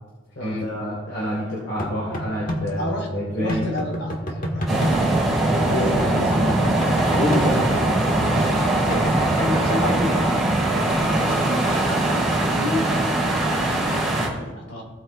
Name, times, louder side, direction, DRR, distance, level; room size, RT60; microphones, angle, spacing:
voice 1, 0.3-3.6 5.5-6.6 7.1-7.7 8.2-8.3, equal, 70° left, -6 dB, 3.2 m, -27 dB
sound 1, 1.8-2.6 3.5-5.0 6.0-7.4 8.9-10.0, equal, 45° left, 1.4 m, -29 dB
voice 2, 2.7-3.1 3.3-5.2 5.6-6.3 8.6-11.8 12.5-14.8, left 1 dB, 90° left, -2 dB, 3.1 m, -32 dB
sound 2, 4.7-14.3, right 2 dB, ahead, 3.2 m, -21 dB
17.5 x 8.5 x 2.2 m, 1.3 s
head